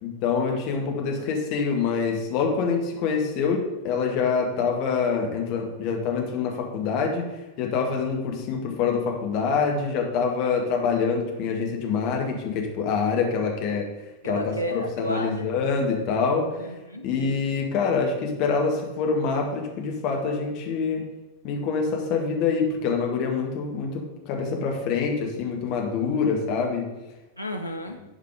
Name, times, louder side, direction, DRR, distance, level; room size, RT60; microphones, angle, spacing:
voice 1, 0.0-7.3 7.6-13.9 14.2-16.5 17.0-21.0 21.4-26.9, left 5 dB, 45° left, 1 dB, 2.0 m, -25 dB
voice 2, 14.2-15.5 16.6-17.0 27.4-28.0, equal, 85° right, 5 dB, 0.7 m, -32 dB
11.5 x 4.9 x 5.1 m, 1.1 s
figure-of-eight pair, 90°, 0 cm